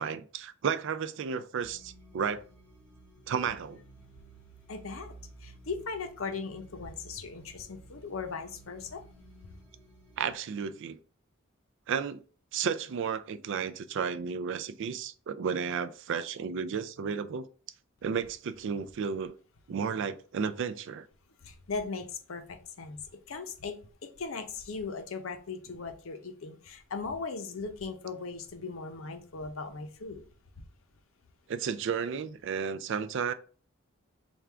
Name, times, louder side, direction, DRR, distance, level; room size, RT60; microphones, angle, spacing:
voice 1, 0.0-2.4 3.3-3.8 10.2-11.0 11.9-12.2 12.5-17.5 18.0-19.3 19.7-21.1 31.5-33.3, right 6 dB, 60° right, 0.4 m, -33 dB
sound 1, 1.6-10.3, right 3 dB, 10° left, 1.0 m, -54 dB
voice 2, 4.7-9.0 21.4-23.0 23.3-30.2, left 4 dB, 75° left, 0.6 m, -38 dB
3.6 x 2.3 x 4.4 m
head